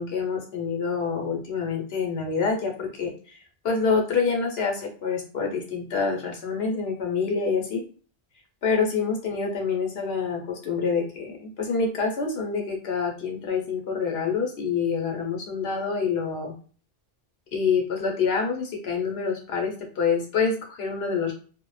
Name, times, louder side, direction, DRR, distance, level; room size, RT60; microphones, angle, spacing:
voice 1, 0.0-3.4 3.6-7.8 8.6-16.5 17.5-21.3, left 5 dB, 80° left, 2 dB, 1.0 m, -27 dB
2.4 x 2.0 x 3.1 m, 0.41 s
omnidirectional pair, 1.0 m